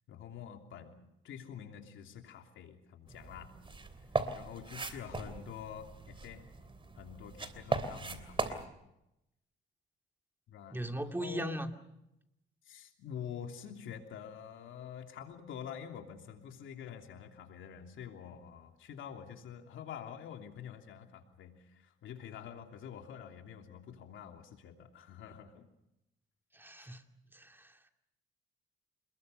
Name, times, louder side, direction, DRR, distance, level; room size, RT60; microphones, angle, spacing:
voice 1, 0.1-3.5 4.3-6.4 7.0-8.7 10.5-11.6 12.6-25.7 26.8-26.9, left 8 dB, 80° left, 4 dB, 3.1 m, -47 dB
sound 1, 3.1-8.7, right 3 dB, 25° right, 3.1 m, -38 dB
voice 2, 10.7-11.7 26.5-27.0 27.3-27.8, right 1 dB, 10° right, 5 dB, 2.4 m, -38 dB
27.5 x 21.0 x 6.7 m, 0.86 s
cardioid pair, 90°, 20 cm